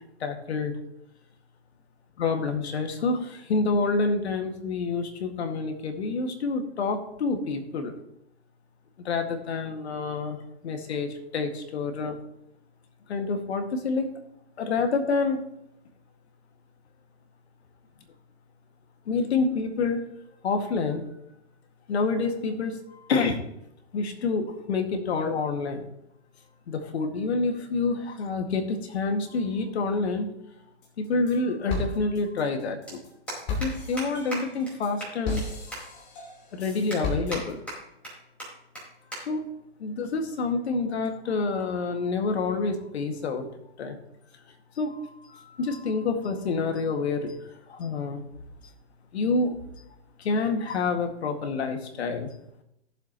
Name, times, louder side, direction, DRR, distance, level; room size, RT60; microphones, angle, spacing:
voice 1, 0.2-0.7 2.2-7.9 9.1-10.4 10.6-12.2 13.1-14.1 14.6-15.4 19.1-20.0 20.4-21.0 21.9-22.8 23.1-23.4 23.9-25.8 26.7-30.3 31.0-33.0 33.6-35.4 35.7-35.9 36.5-37.6 39.3-39.4 39.8-43.5 43.8-44.0 44.8-47.3 47.7-48.2 49.1-49.6 50.2-52.3, left 4 dB, 75° left, 5 dB, 2.0 m, -28 dB
sound 1, 30.6-30.7 32.1-32.2 32.4-32.6 32.9-33.0 33.3-33.7 34.0-34.1 34.3-34.4 34.7-34.8 35.0-35.4 35.7-35.8 36.3-36.4 36.9-37.4 37.7-38.1 38.4-38.5 38.7-38.8 39.1-39.2 39.5-39.8 40.5-40.8, equal, 5° left, 4.5 m, -36 dB
sound 2, 30.8-31.4 31.7-37.7, left 3 dB, 30° left, 2.9 m, -35 dB
16.5 x 7.5 x 3.0 m, 0.80 s
hypercardioid pair, 140°, 33 cm